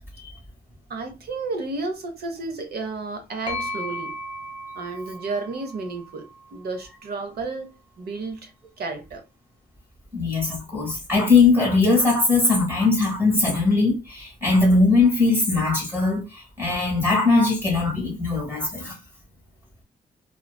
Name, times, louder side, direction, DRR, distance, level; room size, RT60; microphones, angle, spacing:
voice 1, 0.9-4.1 4.7-6.3 6.5-7.7 8.0-8.5 8.8-9.2, right 3 dB, 75° right, 0.6 m, -32 dB
sound 1, 3.5-7.2, left 1 dB, 30° left, 0.5 m, -36 dB
voice 2, 10.1-18.9, left 3 dB, 15° right, 0.9 m, -20 dB
2.4 x 2.3 x 2.2 m
wide cardioid pair, 170°, 16 cm